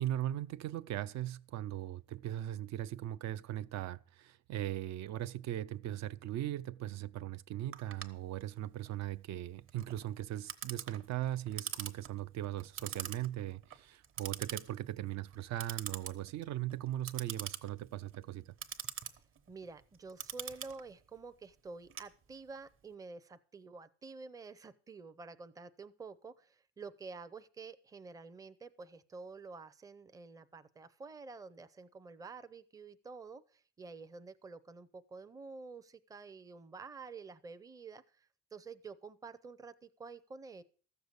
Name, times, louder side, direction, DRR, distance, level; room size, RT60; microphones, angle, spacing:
voice 1, 0.0-18.5, right 13 dB, 60° right, 0.5 m, -39 dB
Clock, 7.7-22.7, right 8 dB, 40° right, 1.2 m, -45 dB
voice 2, 19.5-40.6, right 4 dB, 10° right, 0.5 m, -49 dB
14.5 x 6.8 x 8.0 m
cardioid pair, 150°, 32 cm